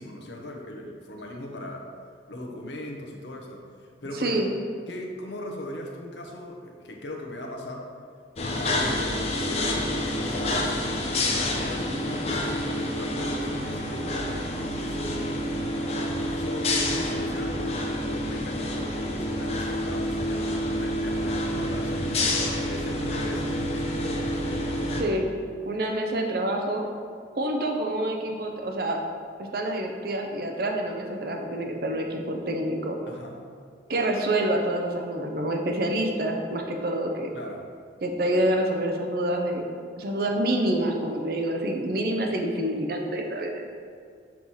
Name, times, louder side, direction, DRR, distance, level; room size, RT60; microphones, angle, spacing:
voice 1, 0.0-1.8 2.3-4.4 4.9-7.9 8.6-15.3 16.3-22.3 22.6-24.8 25.8-26.0 33.1-33.4 37.3-37.7, left 1 dB, 75° left, 1 dB, 0.9 m, -39 dB
voice 2, 4.2-4.5 25.0-25.3 25.6-26.9 27.4-29.0 29.4-33.0 33.9-37.3 38.0-39.7 40.0-43.6, right 1 dB, 55° right, 2 dB, 0.7 m, -27 dB
sound 1, 8.4-25.0, left 1 dB, 35° left, 0.6 m, -28 dB
5.9 x 3.2 x 5.6 m, 2.2 s
head